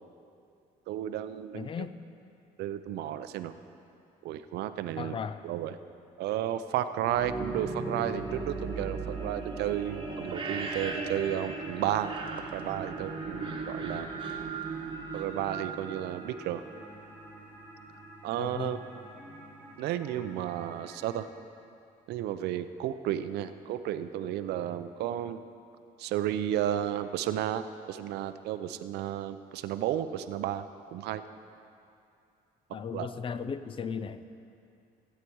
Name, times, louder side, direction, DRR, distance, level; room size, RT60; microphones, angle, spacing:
voice 1, 0.9-1.7 2.6-3.5 4.2-5.2 5.4-5.8 6.2-12.1 12.5-14.1 15.1-16.6 18.2-18.8 19.8-21.3 22.1-25.4 26.0-31.2 32.9-33.1, right 11 dB, 80° right, 11 dB, 0.6 m, -33 dB
voice 2, 1.5-1.9 5.0-5.4 18.4-18.8 32.7-34.2, left 6 dB, 30° left, 13 dB, 0.5 m, -36 dB
sound 1, 7.0-16.8, right 4 dB, 30° right, 1.2 m, -37 dB
sound 2, 7.5-21.2, right 1 dB, 10° left, 2.2 m, -49 dB
16.0 x 8.4 x 4.7 m, 2.6 s
cardioid pair, 110°, 17 cm